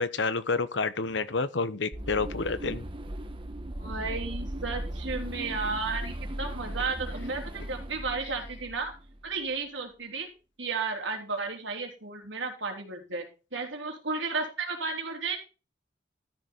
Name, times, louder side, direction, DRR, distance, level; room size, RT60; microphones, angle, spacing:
voice 1, 0.0-2.8, left 4 dB, 70° left, 0.9 m, -29 dB
sound 1, 1.9-9.3, right 1 dB, 30° right, 1.2 m, -37 dB
voice 2, 3.8-8.9 9.2-10.3 10.6-15.4, right 4 dB, 80° right, 3.3 m, -33 dB
13.5 x 6.5 x 4.4 m
head